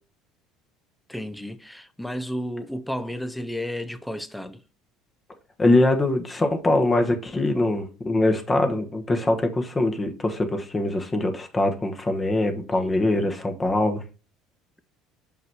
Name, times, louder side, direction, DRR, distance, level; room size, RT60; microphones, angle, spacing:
voice 1, 1.1-4.6 7.4-7.9 12.8-13.1, equal, 5° left, 0.7 m, -33 dB
voice 2, 5.6-14.0, left 2 dB, 20° left, 1.2 m, -23 dB
5.9 x 5.7 x 4.8 m
supercardioid pair, 110°, 0 cm